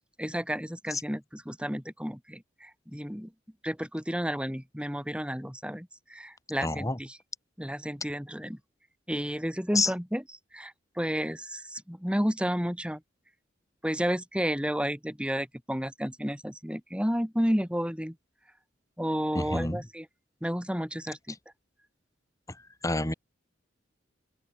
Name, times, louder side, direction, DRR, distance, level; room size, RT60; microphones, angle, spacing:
voice 1, 0.2-3.3 3.6-7.2 7.6-8.6 9.1-10.2 10.5-13.0 13.8-18.1 19.0-20.0 20.4-21.4, equal, 5° right, 6.2 m, -31 dB
voice 2, 6.6-7.0 9.7-9.9 19.3-19.8 22.5-22.6 22.8-23.1, left 2 dB, 15° left, 3.0 m, -28 dB
open air
head